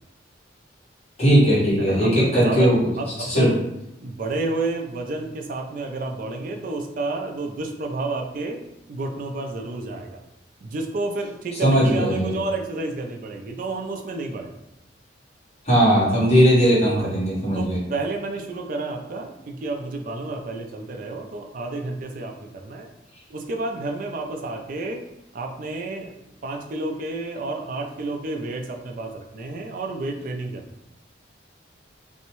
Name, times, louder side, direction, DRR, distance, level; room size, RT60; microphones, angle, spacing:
voice 1, 1.2-2.9 3.2-3.5 11.6-12.3 15.6-17.8, equal, 35° left, -8 dB, 1.1 m, -18 dB
voice 2, 1.8-3.5 4.0-8.6 8.9-10.2 10.6-14.5 17.0-17.1 17.5-22.9 23.3-25.0 25.3-26.2 26.4-30.6, right 2 dB, 45° right, 3 dB, 0.3 m, -30 dB
2.6 x 2.1 x 2.9 m, 0.87 s
head